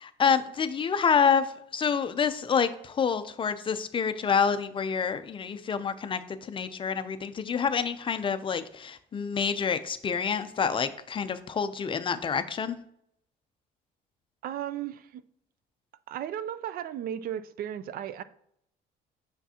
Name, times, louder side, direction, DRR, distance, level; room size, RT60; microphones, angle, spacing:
voice 1, 0.0-1.5 1.7-12.8, left 6 dB, 30° left, 0.4 m, -27 dB
voice 2, 14.4-15.2 16.1-18.2, right 10 dB, 60° right, 0.4 m, -35 dB
5.9 x 5.8 x 2.8 m
cardioid pair, 110°, 17 cm